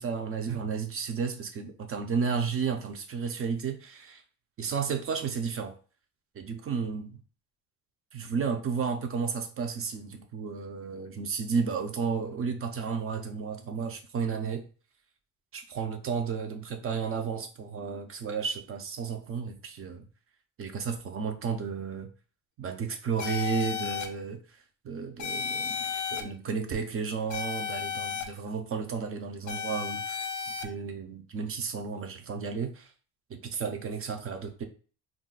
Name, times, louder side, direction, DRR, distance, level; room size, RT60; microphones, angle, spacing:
voice 1, 0.0-4.2 4.6-5.7 6.4-7.2 8.1-14.6 15.5-20.1 20.6-22.1 22.6-24.4 24.8-30.3 30.6-32.9 33.3-34.7, right 6 dB, 35° right, 0.4 m, -33 dB
sound 1, 23.2-24.1 25.2-26.2 27.3-28.2 29.5-30.6, left 7 dB, 45° left, 0.6 m, -33 dB
2.4 x 2.1 x 3.8 m
cardioid pair, 125°, 40 cm